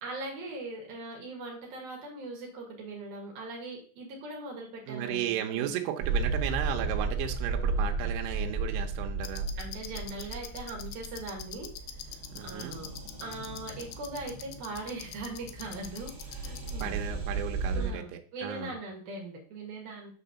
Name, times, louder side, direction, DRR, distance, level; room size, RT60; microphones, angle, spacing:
voice 1, 0.0-5.7 9.6-12.9 13.2-17.0 17.7-18.1 18.3-20.1, right 2 dB, 60° right, -1 dB, 3.2 m, -40 dB
voice 2, 4.9-9.5 12.3-12.8 16.8-18.8, right 11 dB, 90° right, 3 dB, 3.4 m, -34 dB
sound 1, 6.0-17.9, right 3 dB, 45° right, 1.8 m, -34 dB
sound 2, 9.2-16.8, left 9 dB, 80° left, 2.5 m, -45 dB
8.7 x 3.7 x 6.9 m, 0.44 s
omnidirectional pair, 5.5 m